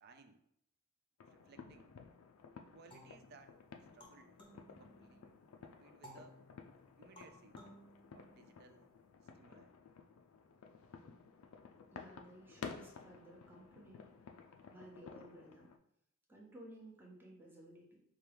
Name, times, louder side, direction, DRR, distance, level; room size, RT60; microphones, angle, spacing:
voice 1, 0.0-0.4 1.2-2.0 2.7-3.6 3.9-4.4 4.7-5.3 5.6-6.4 7.0-7.6 8.1-9.0 9.3-9.7, right 4 dB, 50° right, 8 dB, 0.4 m, -62 dB
sound 1, 1.2-15.8, left 5 dB, 75° left, 0.4 m, -54 dB
sound 2, 2.9-5.4 6.0-8.8, equal, 25° left, 0.8 m, -60 dB
voice 2, 11.9-14.1 14.7-15.7 16.3-18.0, right 1 dB, 10° right, -3 dB, 0.8 m, -56 dB
4.4 x 2.3 x 3.3 m, 0.73 s
head